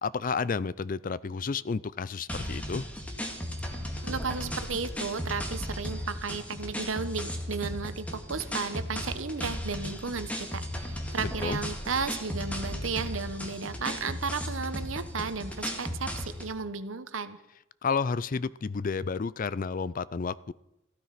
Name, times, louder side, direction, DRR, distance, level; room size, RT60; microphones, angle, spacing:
voice 1, 0.0-2.8 11.4-11.6 17.8-20.5, left 5 dB, 45° left, 19 dB, 0.4 m, -31 dB
sound 1, 2.3-16.5, equal, 5° left, 2.0 m, -36 dB
voice 2, 4.0-17.4, right 5 dB, 85° right, 11 dB, 1.1 m, -34 dB
15.0 x 13.0 x 5.9 m, 0.89 s
head